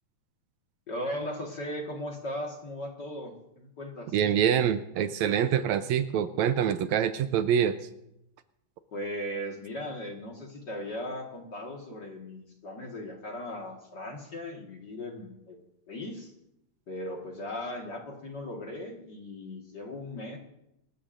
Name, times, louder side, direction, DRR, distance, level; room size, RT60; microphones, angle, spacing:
voice 1, 0.9-4.2 8.9-16.3 16.9-20.4, left 1 dB, 40° left, 1 dB, 1.8 m, -38 dB
voice 2, 4.1-7.8, right 9 dB, 75° right, 10 dB, 1.9 m, -25 dB
26.0 x 13.5 x 2.6 m, 0.84 s
omnidirectional pair, 3.4 m